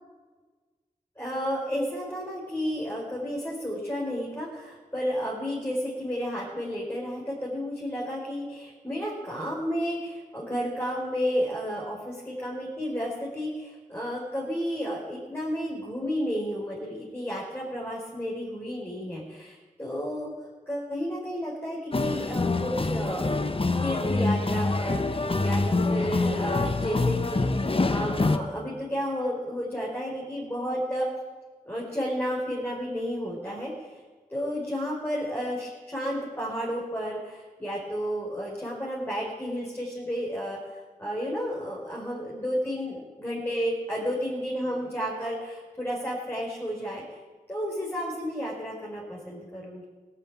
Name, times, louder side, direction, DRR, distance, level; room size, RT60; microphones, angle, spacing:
voice 1, 1.2-20.3 20.7-23.5 23.8-31.1 31.7-34.0 34.3-40.6 41.0-47.0 47.5-49.8, equal, 15° left, -5 dB, 4.8 m, -32 dB
sound 1, 21.9-28.4, left 3 dB, 40° left, 1.0 m, -25 dB
17.5 x 8.6 x 8.9 m, 1.4 s
cardioid pair, 45°, 15 cm